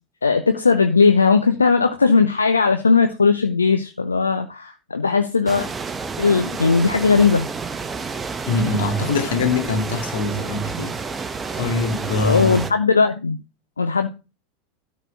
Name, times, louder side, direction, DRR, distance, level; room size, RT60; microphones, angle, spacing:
voice 1, 0.2-5.7 6.2-7.5 12.2-13.4 13.8-14.1, left 4 dB, 80° left, 0.7 m, -18 dB
sound 1, 5.5-12.7, right 4 dB, 20° right, 1.0 m, -30 dB
voice 2, 8.5-11.0 11.5-12.6, left 3 dB, 65° left, 2.1 m, -23 dB
12.5 x 4.3 x 5.7 m
figure-of-eight pair, 85°, 0 cm